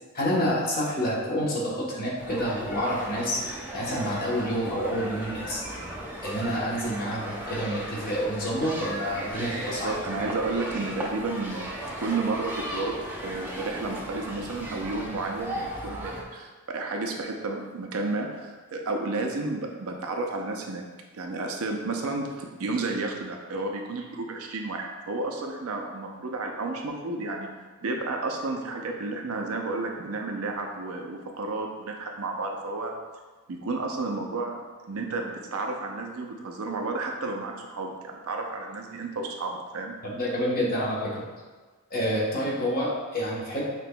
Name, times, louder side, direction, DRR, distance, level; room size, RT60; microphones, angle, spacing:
voice 1, 0.1-3.5 3.7-5.6 6.2-9.9 10.2-10.3 40.0-41.2 41.9-43.7, equal, 40° left, -5 dB, 1.0 m, -28 dB
sound 1, 2.2-16.2, right 1 dB, 10° right, 0.5 m, -36 dB
voice 2, 9.7-20.9 21.1-27.5 27.8-32.9 33.5-34.6 34.9-40.0, right 3 dB, 70° right, 2 dB, 0.5 m, -32 dB
5.9 x 2.9 x 2.2 m, 1.4 s
head